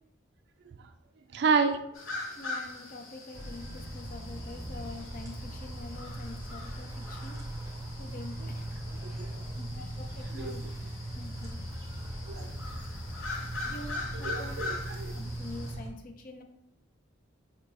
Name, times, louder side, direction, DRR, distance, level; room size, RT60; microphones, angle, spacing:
voice 1, 1.3-1.8 9.0-9.4 10.4-10.5 12.3-12.5 14.1-15.1, right 5 dB, 55° right, 8 dB, 0.3 m, -29 dB
sound 1, 1.9-15.7, left 3 dB, 90° left, 0.7 m, -42 dB
voice 2, 2.4-7.4 8.0-8.7 9.6-10.6 11.1-11.6 13.6-14.5 15.2-16.4, left 2 dB, 45° left, 4 dB, 0.5 m, -45 dB
sound 2, 3.3-15.9, right 1 dB, 15° right, 0.6 m, -39 dB
4.5 x 2.5 x 3.1 m, 0.80 s
head